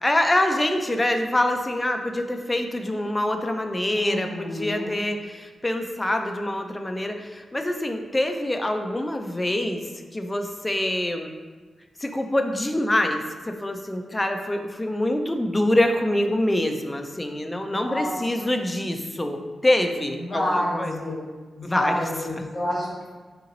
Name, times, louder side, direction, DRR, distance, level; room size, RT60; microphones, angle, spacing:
voice 1, 0.0-9.8 10.1-11.3 12.0-13.2 13.5-20.9 21.6-21.9, left 1 dB, 15° left, 5 dB, 0.3 m, -25 dB
voice 2, 3.9-5.0 17.8-18.5 20.1-21.1 21.5-23.1, left 1 dB, 40° left, -7 dB, 1.4 m, -29 dB
3.8 x 2.9 x 3.8 m, 1.4 s
wide cardioid pair, 135°, 0 cm